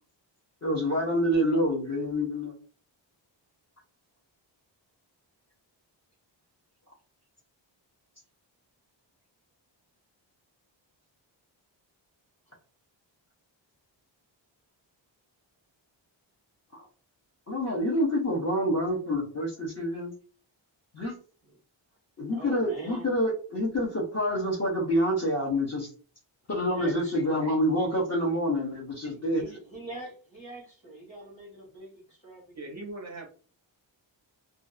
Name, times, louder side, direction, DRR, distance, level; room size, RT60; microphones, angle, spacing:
voice 1, 0.6-2.6 16.7-16.9 17.5-20.1 20.9-21.1 22.2-25.9 26.5-29.4, equal, 35° left, -2 dB, 0.8 m, -27 dB
voice 2, 22.2-23.1 26.6-27.5 29.1-32.7, right 2 dB, 15° left, -3 dB, 1.3 m, -43 dB
voice 3, 32.5-33.3, right 2 dB, 40° right, 1 dB, 0.4 m, -39 dB
2.6 x 2.3 x 2.4 m, 0.39 s
wide cardioid pair, 160°, 46 cm